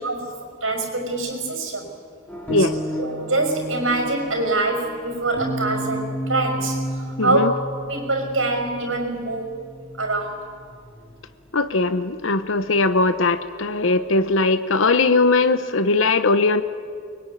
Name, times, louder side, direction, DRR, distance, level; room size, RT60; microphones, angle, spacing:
voice 1, 0.0-1.9 2.6-2.7 3.0-7.4 7.9-9.5 10.0-10.4, right 2 dB, 75° right, 4 dB, 5.8 m, -25 dB
sound 1, 2.3-11.1, right 1 dB, 5° left, 4.3 m, -32 dB
voice 2, 7.2-7.5 11.5-16.6, left 3 dB, 70° left, 11 dB, 0.9 m, -19 dB
24.0 x 21.5 x 9.9 m, 2.2 s
head